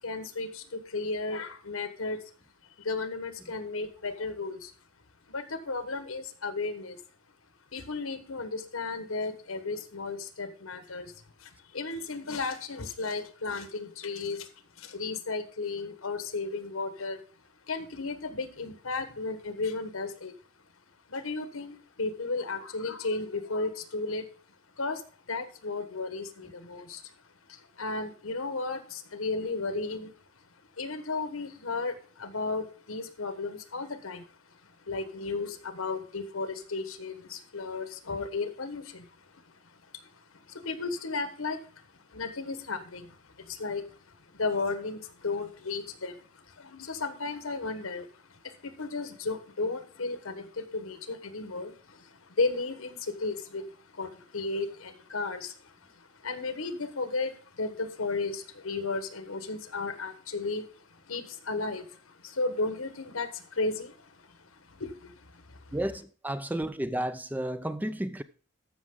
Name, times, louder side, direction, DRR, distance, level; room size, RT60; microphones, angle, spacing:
voice 1, 0.0-2.2 2.8-4.7 5.3-7.0 7.7-11.1 11.4-14.5 14.8-17.2 17.7-20.3 21.1-24.3 24.8-27.1 27.5-30.1 30.8-34.3 34.8-44.0 44.3-65.7, left 3 dB, 80° left, 1.3 m, -34 dB
voice 2, 65.7-68.2, right 1 dB, 10° right, 0.3 m, -32 dB
13.5 x 6.0 x 3.8 m
head